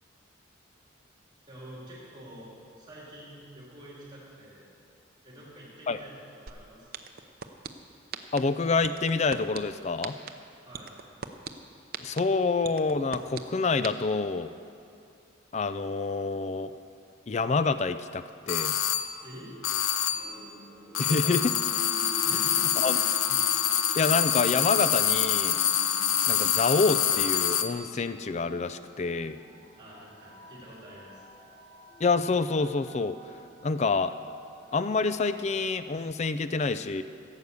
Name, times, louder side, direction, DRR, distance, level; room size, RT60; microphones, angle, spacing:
voice 1, 1.5-2.5 2.8-4.7 5.2-7.0 10.6-11.0 19.2-19.6 21.2-21.5 22.2-23.1 29.8-31.2, right 1 dB, 20° right, -6 dB, 3.3 m, -47 dB
sound 1, 6.5-6.6 6.9-7.7 8.1-8.4 8.8-9.6 10.0-10.3 10.7-11.5 11.9-12.2 12.6-13.4 13.8-13.9, right 7 dB, 50° right, 0.6 m, -36 dB
voice 2, 8.3-10.1 12.0-14.5 15.5-16.7 17.3-18.7 21.0-21.5 22.8-23.0 24.0-25.6 26.3-29.4 32.0-33.2 33.6-34.1 34.7-37.0, left 4 dB, 35° left, 12 dB, 0.4 m, -27 dB
sound 2, 18.5-19.2 19.6-20.4 20.9-27.8, left 9 dB, 80° left, 0.6 m, -26 dB
sound 3, 20.1-35.7, left 1 dB, 15° left, 3.3 m, -48 dB
16.5 x 8.2 x 6.9 m, 2.5 s
head